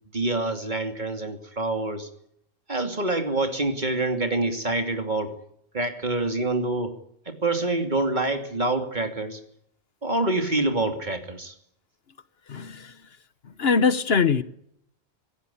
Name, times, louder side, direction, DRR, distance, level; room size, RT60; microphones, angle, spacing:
voice 1, 0.1-2.1 2.7-5.4 5.7-6.9 7.3-9.4 10.0-11.5, right 2 dB, 45° right, 3.0 m, -26 dB
voice 2, 12.5-12.9 13.6-14.4, left 5 dB, 65° left, 1.3 m, -22 dB
26.0 x 17.0 x 8.6 m
omnidirectional pair, 1.1 m